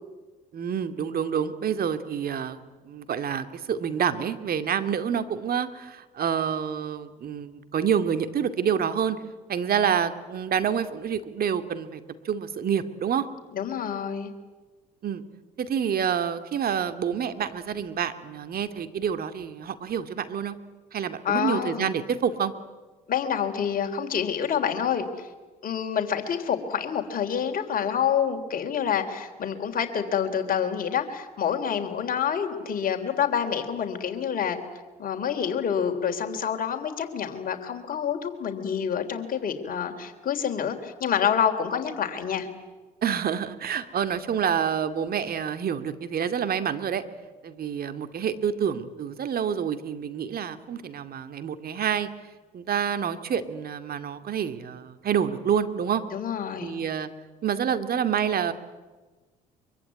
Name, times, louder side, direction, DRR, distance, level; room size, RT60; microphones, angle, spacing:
voice 1, 0.5-2.6 2.8-9.2 9.5-13.3 15.0-15.2 15.6-20.6 20.9-22.5 43.0-47.0 47.4-52.1 52.5-56.0 56.6-57.1 57.4-58.5, right 8 dB, 50° right, 9 dB, 2.3 m, -27 dB
voice 2, 13.5-14.3 21.2-21.9 23.1-25.3 25.6-34.6 35.0-42.5 56.1-56.8, left 8 dB, 45° left, 4 dB, 3.3 m, -27 dB
24.0 x 23.5 x 9.6 m, 1.3 s
hypercardioid pair, 65°, 20 cm